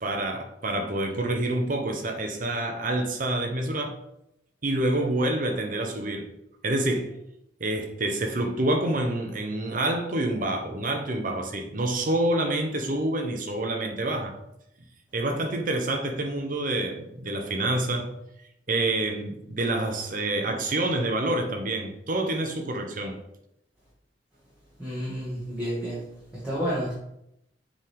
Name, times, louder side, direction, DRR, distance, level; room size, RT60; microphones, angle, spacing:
voice 1, 0.0-4.0 4.6-6.3 6.6-7.1 7.6-14.4 15.1-18.1 18.7-23.2, right 1 dB, 50° right, 0.8 m, -27 dB
voice 2, 24.8-27.0, equal, 10° right, 1.7 m, -31 dB
7.1 x 3.7 x 3.6 m
head